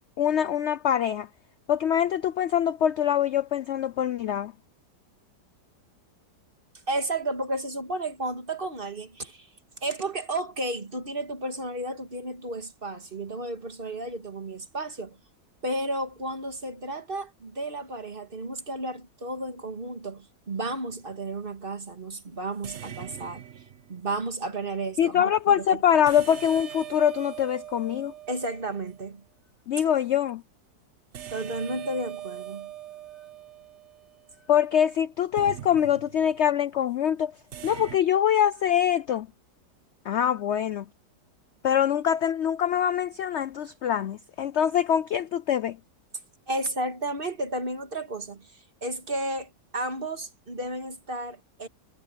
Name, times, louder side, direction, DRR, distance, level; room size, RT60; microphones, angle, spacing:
voice 1, 0.2-1.3 1.7-4.5 25.0-28.1 29.7-30.4 34.5-37.3 37.6-39.3 40.0-40.8 41.6-45.8, left 9 dB, 65° left, 0.6 m, -24 dB
voice 2, 6.9-9.5 9.8-15.2 15.6-23.4 23.9-25.8 28.3-29.2 31.3-32.7 46.5-51.7, right 2 dB, 35° right, 2.0 m, -33 dB
sound 1, 20.9-21.2 22.6-24.1 26.1-29.1 31.1-34.5 35.4-36.4 37.5-38.0, right 11 dB, 50° right, 1.0 m, -42 dB
omnidirectional pair, 1.8 m